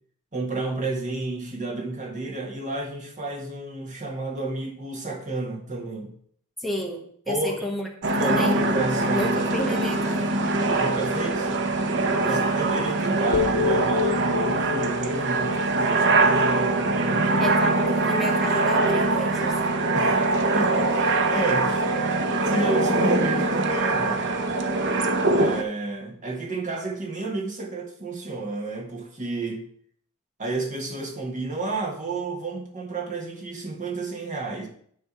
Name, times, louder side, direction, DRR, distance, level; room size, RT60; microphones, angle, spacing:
voice 1, 0.3-6.1 7.3-7.7 8.2-9.3 10.8-11.5 12.2-17.5 19.9-24.3 25.3-29.7 30.4-34.7, right 3 dB, 35° right, 0 dB, 1.6 m, -31 dB
voice 2, 6.6-7.9 8.2-8.6 9.1-10.3 12.2-12.5 17.4-19.8, left 1 dB, ahead, -1 dB, 1.3 m, -31 dB
sound 1, 8.0-25.6, right 2 dB, 55° right, 0.7 m, -23 dB
sound 2, 13.3-17.4, left 7 dB, 90° left, 0.6 m, -30 dB
9.7 x 3.4 x 5.8 m, 0.63 s
head